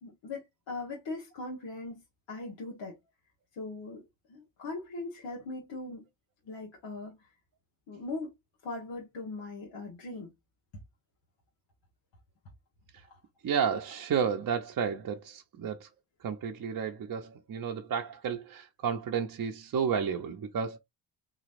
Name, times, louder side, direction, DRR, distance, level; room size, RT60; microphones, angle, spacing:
voice 1, 0.0-3.0 3.5-4.0 4.3-6.0 6.4-7.3 7.9-8.3 8.6-10.3 13.1-13.2, left 3 dB, 75° left, 1.3 m, -40 dB
voice 2, 13.4-15.9 16.2-20.8, right 7 dB, 45° right, 0.7 m, -32 dB
3.9 x 3.0 x 2.5 m
cardioid pair, 65°, 45 cm